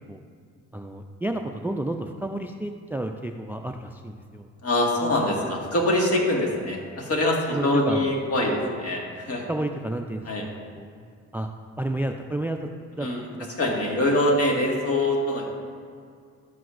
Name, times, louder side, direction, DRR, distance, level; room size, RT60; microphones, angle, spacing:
voice 1, 0.7-4.5 7.5-8.1 9.5-10.8 11.3-11.5 11.8-12.7 13.0-13.1 13.4-13.5, right 1 dB, 5° right, 6 dB, 0.3 m, -31 dB
voice 2, 4.6-9.5 10.3-10.4 13.0-13.3 13.6-15.5, left 1 dB, 50° left, -1 dB, 1.8 m, -24 dB
12.0 x 7.8 x 2.5 m, 2.2 s
cardioid pair, 90°, 30 cm